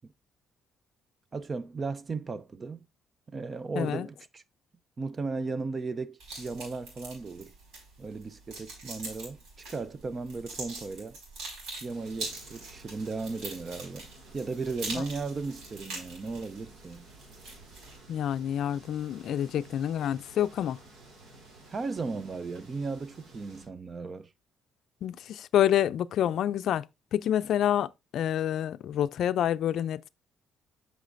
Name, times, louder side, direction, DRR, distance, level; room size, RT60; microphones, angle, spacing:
voice 1, 1.3-2.8 3.3-4.4 5.0-7.5 8.0-11.2 11.8-14.1 14.3-17.1 21.7-24.3, right 4 dB, 30° right, 0.5 m, -36 dB
voice 2, 3.8-4.1 14.9-15.0 18.1-20.8 25.0-26.9 27.1-30.1, left 10 dB, 65° left, 0.4 m, -28 dB
sound 1, 6.2-18.0, right 2 dB, 85° right, 5.0 m, -43 dB
sound 2, 11.9-23.7, right 2 dB, 65° right, 4.0 m, -54 dB
8.3 x 6.3 x 2.6 m
cardioid pair, 135°, 0 cm